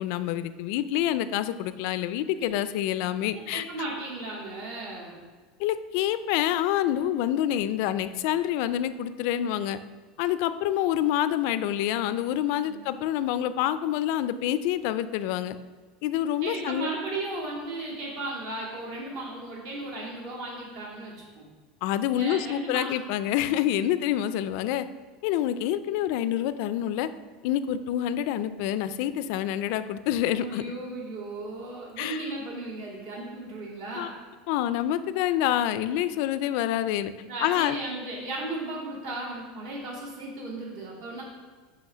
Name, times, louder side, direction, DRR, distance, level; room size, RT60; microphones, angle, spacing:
voice 1, 0.0-3.6 5.6-9.8 10.2-15.6 16.0-16.9 21.8-24.9 25.2-27.1 27.4-30.6 32.0-32.2 34.0-34.1 34.5-37.1 37.4-37.8, left 11 dB, 60° left, 13 dB, 0.3 m, -27 dB
voice 2, 3.3-5.2 12.6-12.9 16.4-21.5 22.1-22.9 30.3-34.2 37.3-41.2, right 2 dB, 70° right, -4 dB, 2.1 m, -35 dB
7.8 x 3.3 x 6.1 m, 1.4 s
cardioid pair, 165°, 0 cm